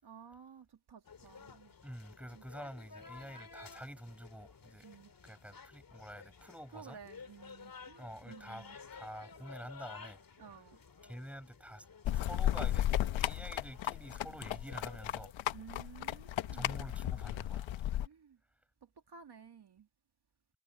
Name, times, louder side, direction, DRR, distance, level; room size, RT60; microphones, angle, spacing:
voice 1, 0.0-1.7 2.3-2.4 4.8-5.1 6.7-8.8 10.4-10.8 15.5-17.0 18.0-18.4 18.8-19.9, right 7 dB, 60° right, 2.4 m, -54 dB
sound 1, 1.0-15.3, left 5 dB, 50° left, 2.2 m, -54 dB
voice 2, 1.8-4.9 5.2-7.0 8.0-10.2 11.0-11.9 12.1-15.3 16.5-17.7, equal, 5° right, 7.3 m, -48 dB
sound 2, 12.0-18.1, left 12 dB, 85° left, 1.0 m, -34 dB
supercardioid pair, 40°, 45 cm